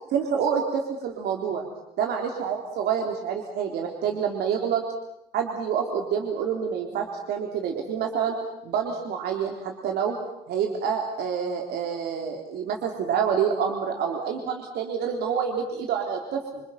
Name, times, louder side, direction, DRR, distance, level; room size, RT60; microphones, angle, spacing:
voice 1, 0.1-1.6 2.0-4.8 5.3-8.4 8.6-10.2 10.5-16.6, right 7 dB, 75° right, 2 dB, 3.7 m, -27 dB
27.5 x 26.5 x 5.9 m, 0.83 s
cardioid pair, 110°, 17 cm